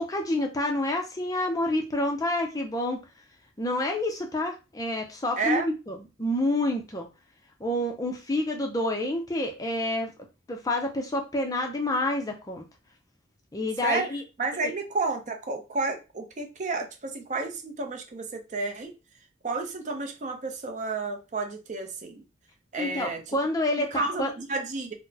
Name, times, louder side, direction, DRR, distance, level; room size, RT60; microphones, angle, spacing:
voice 1, 0.0-3.0 3.6-7.1 7.6-10.1 10.5-12.7 13.5-14.2 22.8-24.3, left 1 dB, 20° left, 3 dB, 0.5 m, -28 dB
voice 2, 5.4-5.7 13.8-14.1 14.4-18.9 19.4-22.2 22.7-23.2 23.9-24.9, right 3 dB, 40° right, 5 dB, 0.5 m, -31 dB
3.9 x 2.0 x 2.7 m, 0.28 s
head